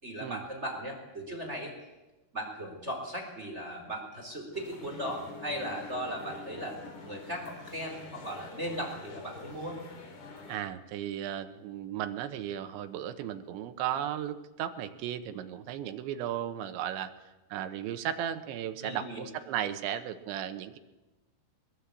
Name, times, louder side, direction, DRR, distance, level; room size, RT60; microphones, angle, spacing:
voice 1, 0.0-1.7 2.3-6.7 7.1-9.8 18.8-19.2, equal, 15° right, 2 dB, 4.1 m, -37 dB
sound 1, 4.5-10.6, left 4 dB, 60° left, 4.9 m, -47 dB
voice 2, 10.5-17.1 17.5-20.8, right 10 dB, 75° right, 9 dB, 3.3 m, -35 dB
22.5 x 21.5 x 8.5 m, 1.1 s
omnidirectional pair, 5.5 m